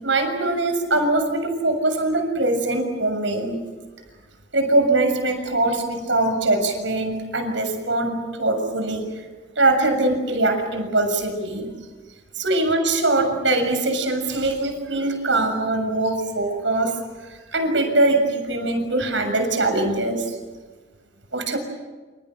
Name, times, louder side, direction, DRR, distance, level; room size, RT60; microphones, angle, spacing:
voice 1, 0.0-3.6 4.5-9.0 9.6-11.7 12.4-17.0 17.3-20.3 21.3-21.6, right 2 dB, 75° right, 5 dB, 7.0 m, -22 dB
29.0 x 29.0 x 6.5 m, 1.3 s
head